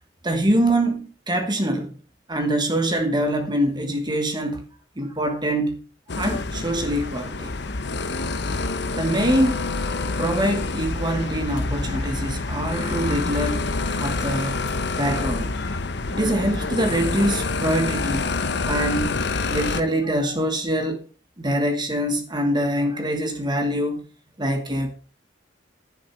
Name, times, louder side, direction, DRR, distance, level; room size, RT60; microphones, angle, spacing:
voice 1, 0.2-1.9 2.3-4.6 5.0-5.8 6.2-7.5 9.0-9.7 10.2-14.6 14.9-15.7 16.1-18.3 18.6-21.0 21.4-24.0 24.4-24.9, right 1 dB, 25° right, 1.4 m, -24 dB
sound 1, 6.1-19.8, left 3 dB, 65° left, 1.0 m, -27 dB
10.5 x 9.2 x 4.6 m
head